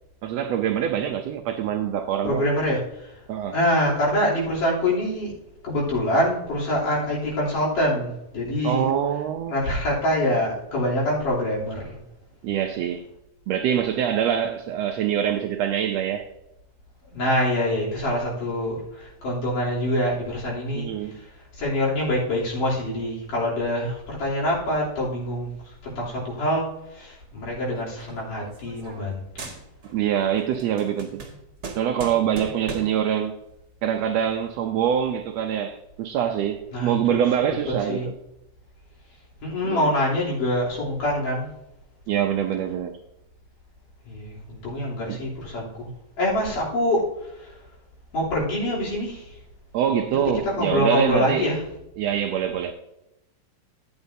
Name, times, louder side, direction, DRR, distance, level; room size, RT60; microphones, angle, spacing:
voice 1, 0.2-2.4 3.3-3.6 8.6-9.6 12.4-13.1 13.5-16.3 20.7-21.2 29.9-31.2 31.8-33.3 33.8-38.1 39.6-39.9 42.1-43.0 45.1-45.2 49.7-51.5 52.0-52.7, right 9 dB, 85° right, 1.5 m, -24 dB
voice 2, 2.2-3.1 3.5-5.3 5.6-8.9 9.5-12.0 17.1-20.9 21.6-25.5 25.8-29.5 36.7-37.2 37.5-37.6 37.9-38.1 39.4-41.5 44.0-45.9 46.2-47.1 47.4-47.5 48.1-49.3 50.1-50.2 50.5-51.6, left 1 dB, 85° left, 4.8 m, -25 dB
sound 1, 27.7-29.1 29.4-30.0 30.4-33.1, right 4 dB, 40° right, 1.5 m, -38 dB
13.0 x 8.9 x 2.7 m
omnidirectional pair, 3.6 m